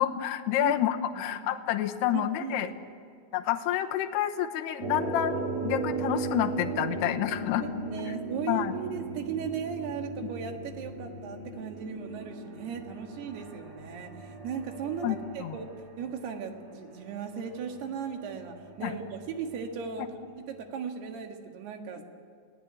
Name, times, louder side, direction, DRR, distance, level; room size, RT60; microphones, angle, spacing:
voice 1, 0.0-2.7 3.3-7.7 8.5-8.7 15.0-15.2 15.4-15.6 18.8-18.9, left 12 dB, 75° left, 5 dB, 2.8 m, -28 dB
voice 2, 2.1-2.7 7.6-15.7 16.0-20.1 20.4-22.0, right 6 dB, 65° right, 4 dB, 3.6 m, -37 dB
sound 1, 4.8-20.3, right 3 dB, 40° right, 3.1 m, -38 dB
30.0 x 18.5 x 9.5 m, 2.2 s
omnidirectional pair, 5.5 m